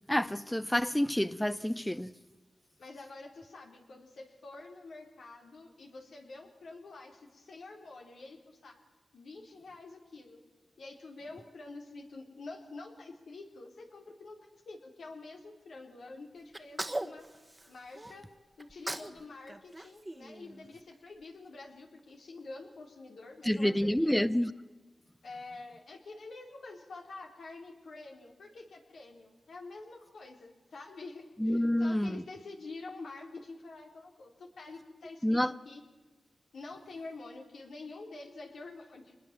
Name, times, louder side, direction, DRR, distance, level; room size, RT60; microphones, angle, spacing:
voice 1, 0.1-2.1 23.4-24.5 31.4-32.2 35.2-35.5, left 1 dB, 10° left, 0.7 m, -28 dB
voice 2, 2.8-8.7 9.1-10.4 10.8-17.3 17.7-18.3 18.6-24.2 25.2-35.8 36.5-39.1, left 3 dB, 85° left, 3.7 m, -47 dB
Sneeze, 16.5-18.1 18.6-19.2 19.5-20.9, right 1 dB, 20° right, 1.4 m, -40 dB
25.5 x 20.5 x 7.5 m
cardioid pair, 50°, 0 cm